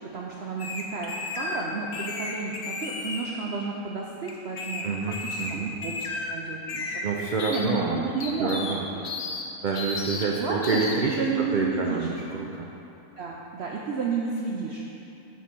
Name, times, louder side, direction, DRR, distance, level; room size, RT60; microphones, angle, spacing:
voice 1, 0.1-5.0 5.3-6.9 7.5-9.0 10.4-12.1 13.2-14.8, right 4 dB, 60° right, -2 dB, 0.8 m, -32 dB
sound 1, 0.6-1.6 1.9-3.2 4.3-4.8 5.1-5.5 5.8-6.3 6.7-7.0 7.4-7.7 8.2-8.7 9.0-9.4 9.7-10.2 10.6-10.9, left 3 dB, 50° left, 0.8 m, -33 dB
voice 2, 4.8-5.7 7.0-8.0 8.4-8.9 9.6-12.7, right 4 dB, 80° right, -1 dB, 0.4 m, -28 dB
6.9 x 4.8 x 6.1 m, 2.9 s
omnidirectional pair, 1.5 m